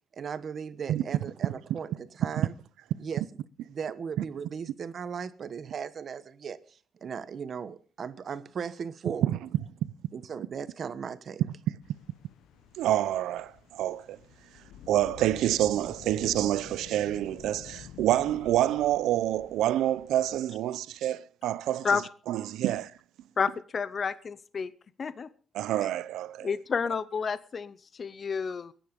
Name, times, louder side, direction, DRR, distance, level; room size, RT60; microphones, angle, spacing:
voice 1, 0.1-2.5 3.0-3.2 3.7-9.3 10.1-11.4, right 6 dB, 45° right, 1.2 m, -37 dB
sound 1, 11.8-20.4, left 10 dB, 85° left, 1.1 m, -49 dB
voice 2, 12.8-14.2 14.9-22.0 22.3-22.9 25.5-26.5, right 13 dB, 90° right, 0.7 m, -27 dB
voice 3, 23.4-24.7 25.0-25.3 26.4-28.7, left 5 dB, 35° left, 0.7 m, -30 dB
21.5 x 10.0 x 5.3 m
cardioid pair, 135°, 0 cm